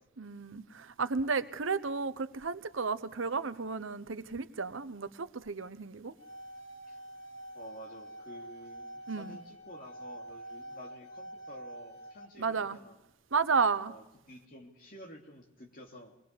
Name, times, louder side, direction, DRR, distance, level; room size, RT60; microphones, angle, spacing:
voice 1, 0.2-6.1 9.1-9.4 12.4-12.8 13.3-14.0, right 5 dB, 75° right, 0.9 m, -32 dB
sound 1, 6.0-12.3, right 1 dB, 60° left, 1.3 m, -46 dB
voice 2, 7.5-13.0 13.9-16.1, equal, 45° left, 3.0 m, -51 dB
22.5 x 20.0 x 6.9 m
head